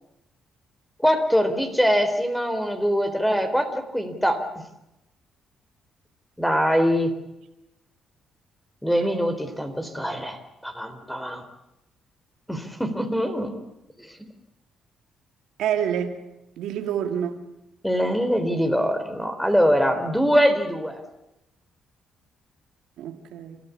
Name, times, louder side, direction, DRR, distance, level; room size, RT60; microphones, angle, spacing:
voice 1, 1.0-4.4 6.4-7.2 8.8-10.4 10.6-11.4 12.5-13.6 14.0-14.3 17.8-21.0, equal, 5° left, 8 dB, 4.0 m, -23 dB
voice 2, 15.6-16.2 16.6-17.4 23.0-23.6, right 9 dB, 85° right, 6 dB, 2.2 m, -27 dB
30.0 x 14.5 x 8.6 m, 0.90 s
cardioid pair, 90°, 0 cm